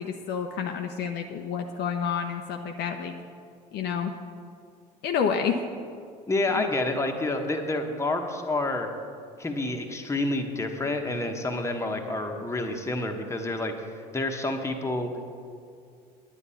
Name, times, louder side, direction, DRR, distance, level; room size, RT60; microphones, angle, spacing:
voice 1, 0.0-3.1 3.7-4.1 5.0-5.6, left 7 dB, 50° left, 4 dB, 0.8 m, -29 dB
voice 2, 6.3-8.9 9.4-13.7 14.1-15.1, left 2 dB, 15° left, 3 dB, 1.4 m, -28 dB
10.0 x 9.8 x 5.7 m, 2.3 s
figure-of-eight pair, 65°, 21 cm